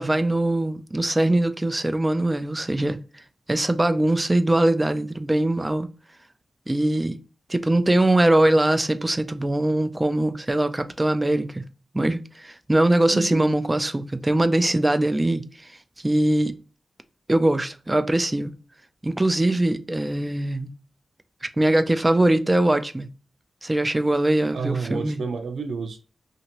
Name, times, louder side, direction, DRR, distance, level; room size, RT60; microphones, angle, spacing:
voice 1, 0.0-3.0 3.5-5.9 6.7-7.2 7.5-11.6 11.9-15.7 16.0-16.5 17.3-18.5 19.0-20.7 21.4-23.1 23.6-25.2, right 1 dB, 15° right, 0.3 m, -22 dB
voice 2, 13.1-13.5 24.5-26.0, right 5 dB, 80° right, 0.5 m, -29 dB
2.9 x 2.6 x 2.8 m
wide cardioid pair, 130°, 0 cm